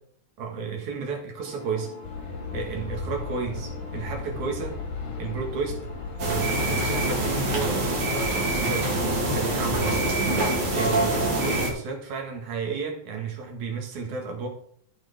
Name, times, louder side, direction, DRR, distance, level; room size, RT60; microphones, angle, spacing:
voice 1, 0.4-1.9 2.5-4.8 5.2-5.9 6.2-10.0 10.7-14.5, right 5 dB, 70° right, 2 dB, 3.2 m, -32 dB
sound 1, 1.4-11.7, left 3 dB, 45° left, 3.2 m, -43 dB
sound 2, 2.0-7.7, left 4 dB, 90° left, 3.4 m, -35 dB
sound 3, 6.2-11.7, right 1 dB, 55° right, 3.5 m, -25 dB
13.5 x 4.6 x 5.3 m, 0.63 s
omnidirectional pair, 3.6 m